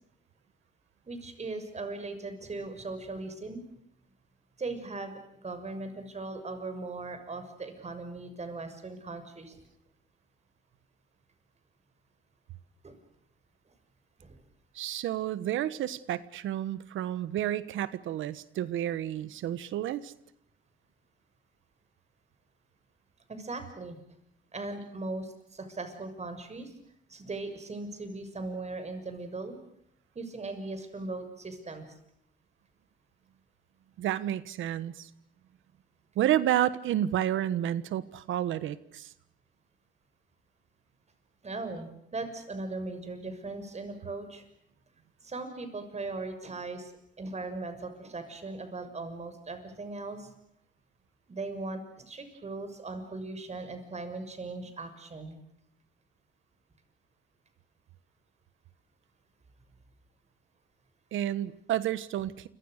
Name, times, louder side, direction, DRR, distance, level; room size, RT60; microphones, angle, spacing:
voice 1, 1.1-3.6 4.6-9.6 12.8-13.0 14.2-14.4 23.3-24.0 24.5-26.7 27.1-29.6 30.1-31.9 41.4-44.4 45.2-46.9 47.2-50.3 51.3-55.4, right 3 dB, 35° right, 8 dB, 6.5 m, -39 dB
voice 2, 14.7-20.1 34.0-35.1 36.1-39.1 61.1-62.5, right 12 dB, 80° right, 16 dB, 1.3 m, -30 dB
28.5 x 24.5 x 6.6 m, 0.77 s
cardioid pair, 90°, 20 cm